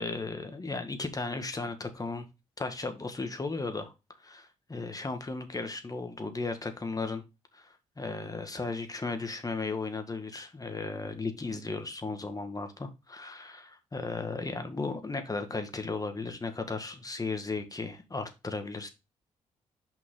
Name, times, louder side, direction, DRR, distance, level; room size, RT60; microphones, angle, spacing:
voice 1, 0.0-2.3 2.6-3.9 4.2-7.2 7.5-18.9, left 3 dB, 25° left, 1.8 m, -35 dB
6.0 x 5.6 x 3.8 m
supercardioid pair, 50°, 14 cm